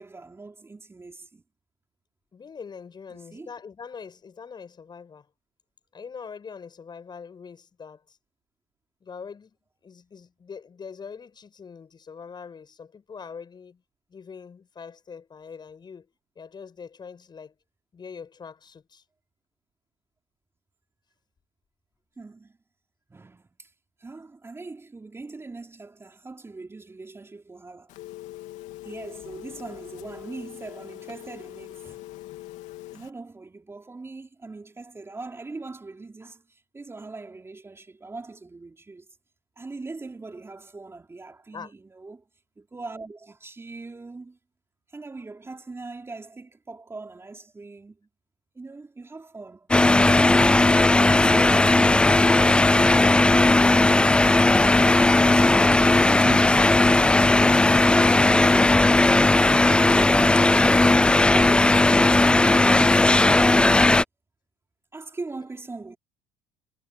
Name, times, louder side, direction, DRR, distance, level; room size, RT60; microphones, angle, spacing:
voice 1, 0.0-1.4 3.1-3.5 22.2-22.6 23.1-23.7 24.0-28.0 28.8-32.0 32.9-39.1 39.6-42.3 42.6-44.4 44.9-48.1 48.5-49.7 51.1-54.5 55.1-58.6 59.4-63.7 64.9-66.0, right 3 dB, 20° right, 4.3 m, -41 dB
voice 2, 2.3-5.3 5.9-8.2 9.0-9.6 9.8-13.8 14.1-16.1 16.4-17.5 17.9-19.0 41.5-41.7, left 6 dB, 35° left, 7.9 m, -42 dB
Telephone, 27.9-33.1, left 16 dB, 70° left, 2.8 m, -42 dB
sound 1, 49.7-64.0, left 2 dB, 10° left, 0.3 m, -17 dB
hypercardioid pair, 75°, 13 cm